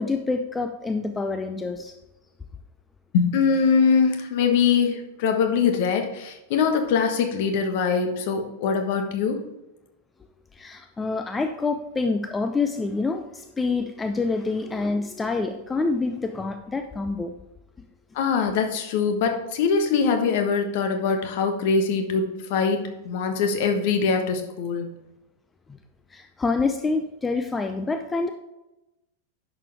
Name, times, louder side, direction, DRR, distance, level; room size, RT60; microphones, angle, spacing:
voice 1, 0.0-1.9 10.5-17.3 26.1-28.3, left 3 dB, 15° left, 7 dB, 0.6 m, -27 dB
voice 2, 3.1-9.4 18.1-25.0, left 5 dB, 50° left, 6 dB, 1.3 m, -23 dB
10.5 x 6.8 x 3.5 m, 0.96 s
figure-of-eight pair, 90°, 0 cm